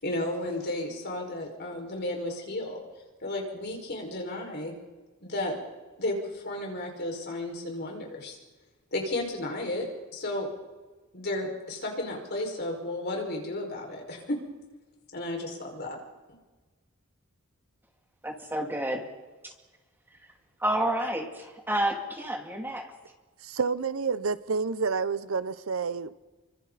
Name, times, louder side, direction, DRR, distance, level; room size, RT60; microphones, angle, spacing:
voice 1, 0.0-2.8 3.2-4.7 5.2-5.5 6.0-8.4 8.9-9.9 10.1-10.5 11.1-14.4 15.1-16.0, left 1 dB, 50° left, 1 dB, 5.5 m, -33 dB
voice 2, 18.2-19.1 19.4-19.5 20.6-22.9, right 1 dB, 10° right, 2 dB, 2.6 m, -30 dB
voice 3, 23.4-26.1, right 5 dB, 85° right, 15 dB, 0.8 m, -29 dB
29.5 x 24.5 x 4.2 m, 1.2 s
head